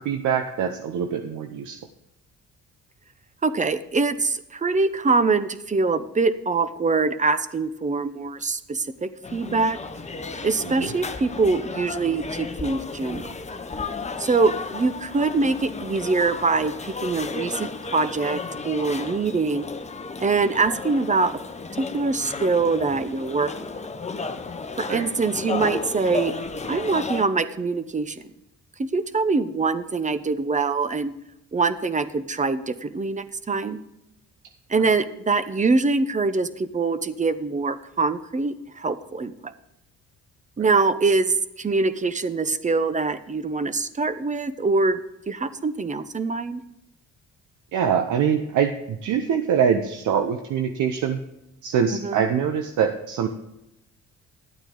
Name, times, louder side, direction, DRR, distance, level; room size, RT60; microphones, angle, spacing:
voice 1, 0.0-1.8 10.8-10.9 24.9-25.0 40.6-40.7 47.7-51.2 51.6-53.3, right 7 dB, 80° right, 6 dB, 0.8 m, -24 dB
voice 2, 3.4-9.8 10.4-13.3 14.2-19.7 20.2-21.4 21.8-23.5 24.8-26.3 26.7-28.2 28.8-31.1 31.5-33.8 34.7-39.5 40.6-45.0 45.3-46.6 51.9-52.2, right 3 dB, 25° right, 13 dB, 0.8 m, -24 dB
sound 1, 9.2-27.2, left 4 dB, 20° left, 0.9 m, -33 dB
12.0 x 8.9 x 3.8 m, 0.87 s
cardioid pair, 90°, 30 cm